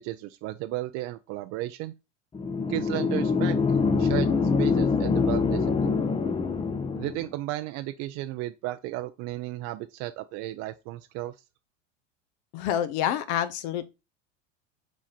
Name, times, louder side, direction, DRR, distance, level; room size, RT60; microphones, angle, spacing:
voice 1, 0.0-1.9 2.7-3.6 4.0-4.3 4.6-6.0 7.0-11.3, right 16 dB, 45° right, 0.5 m, -34 dB
sound 1, 2.3-7.3, left 4 dB, 15° left, 0.6 m, -25 dB
voice 2, 12.5-13.9, left 10 dB, 60° left, 0.8 m, -27 dB
6.1 x 3.7 x 4.2 m
hypercardioid pair, 90°, 39 cm